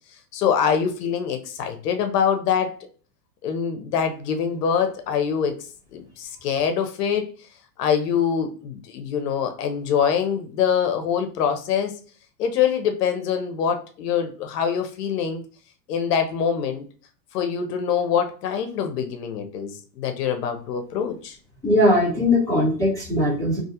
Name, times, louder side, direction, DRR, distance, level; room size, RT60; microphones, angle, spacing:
voice 1, 0.3-2.7 3.4-5.6 5.9-7.3 7.8-12.0 12.4-15.4 15.9-16.9 17.3-21.4, left 7 dB, 70° left, 6 dB, 0.8 m, -24 dB
voice 2, 21.6-23.6, left 1 dB, 5° left, -10 dB, 1.1 m, -20 dB
2.5 x 2.3 x 2.8 m, 0.39 s
hypercardioid pair, 130°, 50 cm